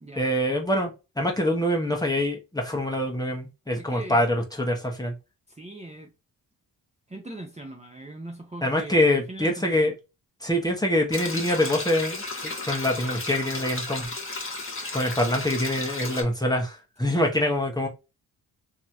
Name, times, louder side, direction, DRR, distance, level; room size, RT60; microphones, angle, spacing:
voice 1, 0.2-5.1 8.6-9.9 10.4-14.1 14.9-17.9, left 1 dB, 10° left, 1.2 m, -25 dB
voice 2, 3.8-4.2 5.5-6.1 7.1-9.0 9.3-10.0 17.0-17.5, right 1 dB, 15° right, 0.8 m, -40 dB
sound 1, 11.1-16.2, left 3 dB, 30° left, 1.4 m, -34 dB
3.0 x 2.9 x 2.5 m
cardioid pair, 55°, 40 cm